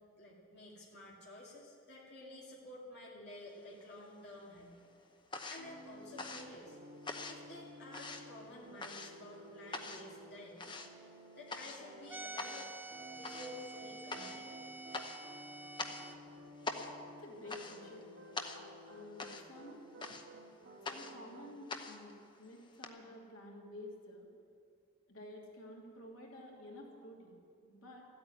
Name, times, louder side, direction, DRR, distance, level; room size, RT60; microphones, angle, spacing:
voice 1, 0.2-4.8 5.5-6.8 7.2-10.7 11.4-12.8 13.1-14.5, left 1 dB, 50° left, -5 dB, 2.4 m, -52 dB
sound 1, 3.5-4.3 4.6-22.9, left 3 dB, 20° left, 0.8 m, -46 dB
sound 2, 5.6-12.6 12.9-21.6, equal, 70° right, 2.2 m, -54 dB
sound 3, 12.1-16.2, right 3 dB, 10° right, 0.6 m, -48 dB
voice 2, 17.2-18.1 18.8-19.8 20.8-22.1 22.4-24.3 25.1-27.4 27.6-28.0, left 1 dB, 80° left, -2 dB, 2.9 m, -51 dB
14.0 x 8.7 x 9.6 m, 2.3 s
head